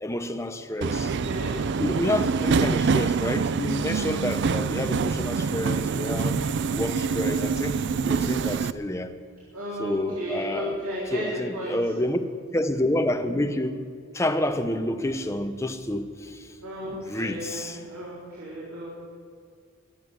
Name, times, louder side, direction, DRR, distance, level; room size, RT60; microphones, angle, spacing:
voice 1, 0.0-1.1 1.7-6.4 6.8-9.1 9.8-12.2 12.5-13.8 14.1-16.5 16.8-17.8, left 1 dB, 15° left, 0.8 m, -29 dB
Subway metro underground, 0.8-8.7, right 5 dB, 55° right, 0.4 m, -25 dB
voice 2, 1.0-1.6 9.5-11.2 11.5-11.8 16.6-18.9, equal, 80° right, 3.7 m, -34 dB
22.5 x 7.8 x 7.9 m
head